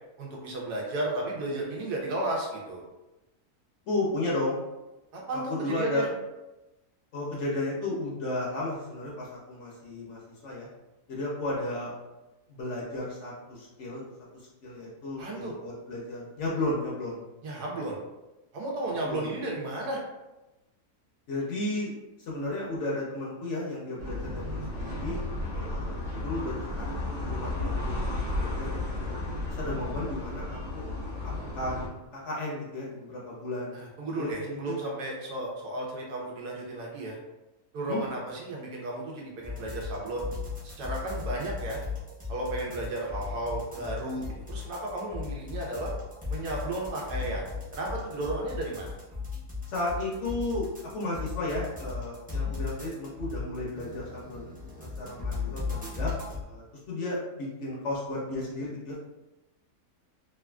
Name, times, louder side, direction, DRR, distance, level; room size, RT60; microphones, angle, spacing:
voice 1, 0.2-2.8 5.1-6.1 15.2-15.5 17.4-18.0 18.5-20.0 33.7-37.2 37.7-40.3 40.8-41.8 42.3-45.9 46.3-48.9, right 2 dB, 90° right, -2 dB, 1.3 m, -33 dB
voice 2, 3.9-4.6 5.5-6.0 7.1-10.7 11.1-11.9 12.5-14.0 14.3-17.2 19.0-19.3 21.3-21.9 22.2-25.2 25.5-28.0 28.4-29.1 29.5-30.8 31.2-33.8 34.2-34.7 37.9-38.0 49.7-56.1 56.4-59.0, left 2 dB, 60° left, -4 dB, 0.8 m, -34 dB
sound 1, 24.0-31.9, left 2 dB, 60° right, 1.0 m, -33 dB
sound 2, 39.4-56.4, left 4 dB, 10° right, 0.4 m, -37 dB
3.2 x 2.4 x 2.2 m, 1.0 s
omnidirectional pair, 1.6 m